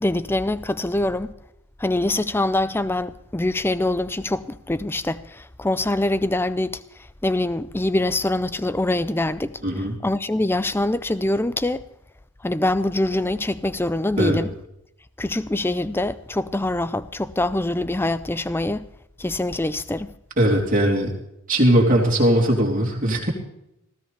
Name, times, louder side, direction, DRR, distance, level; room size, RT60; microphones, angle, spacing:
voice 1, 0.0-1.3 1.8-11.8 12.4-14.5 15.2-18.8 19.2-20.1, left 1 dB, 10° left, 0.4 m, -24 dB
voice 2, 9.6-10.0 14.2-14.4 20.4-21.1 21.5-23.3, right 1 dB, 35° right, 3.6 m, -19 dB
19.0 x 16.0 x 3.4 m
head